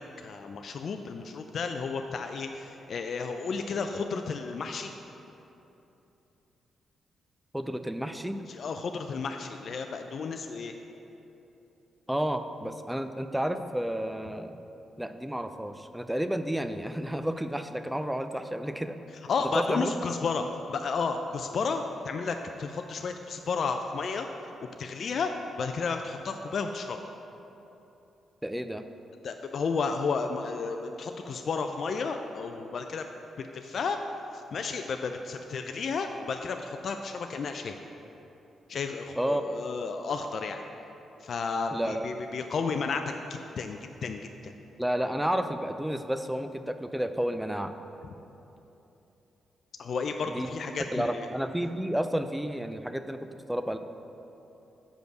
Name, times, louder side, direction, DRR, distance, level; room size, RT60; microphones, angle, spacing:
voice 1, 0.2-4.9 8.5-10.7 19.3-20.4 20.7-24.5 24.8-25.3 25.6-27.0 29.2-33.1 33.4-34.0 34.5-37.8 38.7-40.6 41.2-43.1 43.6-44.5 49.8-51.3, left 5 dB, 60° left, 5 dB, 0.4 m, -32 dB
voice 2, 7.5-8.4 12.1-14.6 15.0-19.0 19.5-20.0 28.4-28.8 39.2-39.4 41.7-42.0 44.8-47.7 50.3-50.5 50.9-53.8, equal, 5° right, 9 dB, 0.5 m, -31 dB
6.2 x 5.1 x 6.6 m, 3.0 s
supercardioid pair, 50°, 0 cm